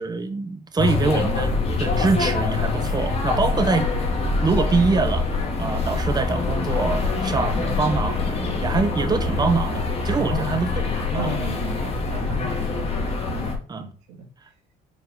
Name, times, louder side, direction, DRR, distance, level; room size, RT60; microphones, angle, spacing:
voice 1, 0.0-3.9 4.4-10.7 11.1-11.3 13.7-13.8, right 4 dB, 25° right, 1.0 m, -24 dB
sound 1, 0.8-13.6, left 3 dB, 35° left, 2.0 m, -24 dB
voice 2, 10.1-10.6 11.1-14.3, right 2 dB, 90° right, 2.6 m, -33 dB
7.5 x 4.6 x 3.7 m
cardioid pair, 110°, 17 cm